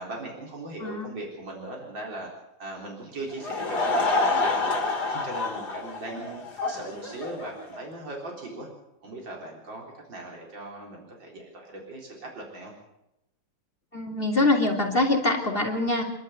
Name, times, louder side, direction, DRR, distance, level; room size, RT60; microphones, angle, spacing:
voice 1, 0.0-2.3 2.6-8.7 9.0-12.7, right 2 dB, 75° right, -1 dB, 4.8 m, -39 dB
Laughter / Crowd, 3.3-7.8, left 3 dB, 60° left, 2.5 m, -28 dB
voice 2, 13.9-16.0, left 2 dB, 30° left, 2 dB, 3.5 m, -24 dB
29.0 x 12.0 x 8.1 m, 0.88 s
omnidirectional pair, 2.0 m